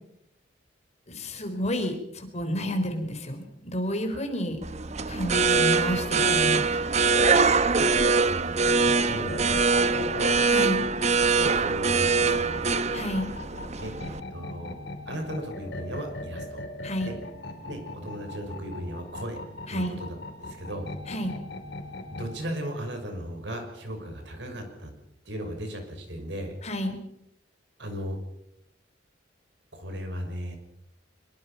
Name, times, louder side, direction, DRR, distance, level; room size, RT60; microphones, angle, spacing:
voice 1, 1.1-4.6 5.1-6.8 10.5-10.8 12.9-13.3 16.8-17.1 19.7-20.0 21.1-21.4 26.6-27.0, equal, 35° left, 6 dB, 4.1 m, -30 dB
sound 1, 4.6-14.2, right 4 dB, 35° right, 0.9 m, -23 dB
voice 2, 8.2-10.4 11.2-12.8 13.8-14.8 15.1-16.6 17.0-17.2 17.7-19.4 19.7-20.9 22.1-24.9 25.2-26.5 27.8-28.2 29.7-30.6, equal, 70° right, 5 dB, 6.0 m, -36 dB
sound 2, 8.6-22.4, left 1 dB, 65° left, 4.6 m, -40 dB
24.0 x 22.5 x 5.8 m, 0.80 s
head